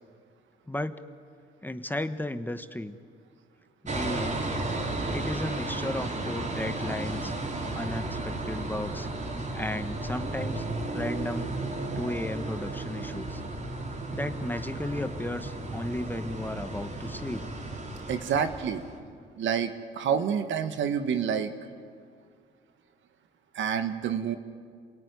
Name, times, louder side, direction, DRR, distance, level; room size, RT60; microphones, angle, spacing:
voice 1, 0.7-1.0 1.6-3.0 3.9-4.4 5.1-7.3 7.7-9.1 9.5-10.6 10.9-11.5 12.0-13.4 14.1-17.4, left 1 dB, 10° left, 9 dB, 1.3 m, -34 dB
sound 1, 3.8-19.0, right 2 dB, 40° right, 4.4 m, -34 dB
voice 2, 18.1-18.8 19.4-21.5 23.5-24.4, right 7 dB, 75° right, 9 dB, 1.7 m, -28 dB
27.5 x 18.0 x 9.7 m, 2.2 s
cardioid pair, 90°, 20 cm